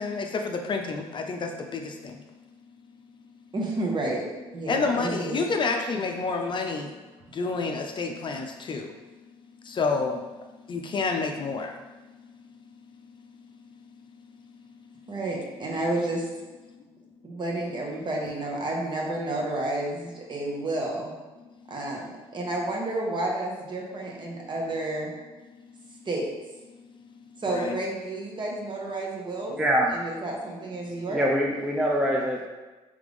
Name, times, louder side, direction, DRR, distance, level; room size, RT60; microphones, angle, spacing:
voice 1, 0.0-2.2 4.7-6.9 7.3-8.9 9.6-10.2 10.7-11.8 27.5-27.8, left 4 dB, 40° left, 3 dB, 0.5 m, -29 dB
voice 2, 3.5-4.2 4.5-5.4 15.1-16.3 17.2-21.1 21.7-25.1 26.0-26.3 27.4-29.6 29.9-31.2, right 2 dB, 40° right, -2 dB, 1.2 m, -30 dB
voice 3, 29.6-30.0 31.1-32.5, equal, 5° right, -2 dB, 0.6 m, -24 dB
3.6 x 3.4 x 3.4 m, 1.2 s
supercardioid pair, 70°, 12 cm